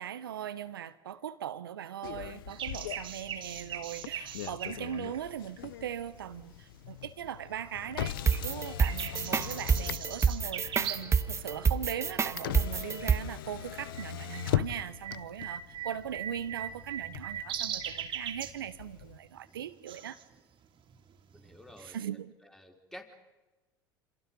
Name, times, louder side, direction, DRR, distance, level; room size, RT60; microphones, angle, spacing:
voice 1, 0.0-20.2 21.8-22.3, right 9 dB, 90° right, 14 dB, 1.0 m, -40 dB
Motor vehicle (road), 2.0-19.2, left 13 dB, 80° left, 0.7 m, -40 dB
sound 1, 2.5-6.5 6.9-7.8 8.0-11.2 11.5-11.6 12.3-12.7 13.0-21.9, right 8 dB, 45° right, 2.8 m, -41 dB
sound 2, 8.3-13.2, right 6 dB, 25° right, 0.9 m, -27 dB
voice 2, 21.3-22.0 22.5-23.1, equal, 5° left, 3 dB, 4.0 m, -50 dB
28.5 x 26.5 x 5.4 m, 1.1 s
hypercardioid pair, 75°, 12 cm